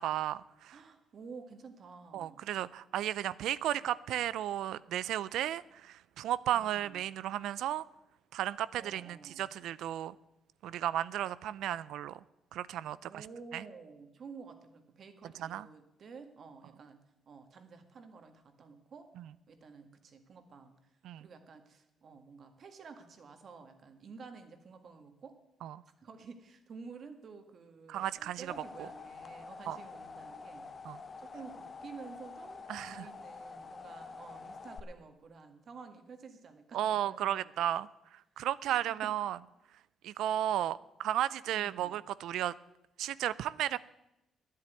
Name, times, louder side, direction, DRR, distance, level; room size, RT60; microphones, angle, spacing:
voice 1, 0.0-0.8 2.1-7.9 8.3-10.2 10.6-12.2 12.5-13.3 13.5-13.6 15.2-15.7 19.2-19.3 21.0-21.3 25.6-25.8 27.9-28.5 28.8-28.9 29.7-29.8 30.8-31.0 32.7-33.1 36.7-39.4 40.0-42.5 43.0-43.8, right 12 dB, 85° right, 18 dB, 0.4 m, -34 dB
voice 2, 0.7-2.4 6.5-7.0 8.7-9.5 13.0-17.0 17.3-19.1 19.5-20.8 21.2-25.4 26.0-30.7 31.2-32.6 32.9-37.7 38.7-39.1 41.5-42.0, right 5 dB, 55° right, 7 dB, 1.8 m, -51 dB
sound 1, 28.1-34.8, left 4 dB, 35° left, 0.9 m, -47 dB
10.5 x 8.6 x 9.1 m, 0.90 s
cardioid pair, 90°, 0 cm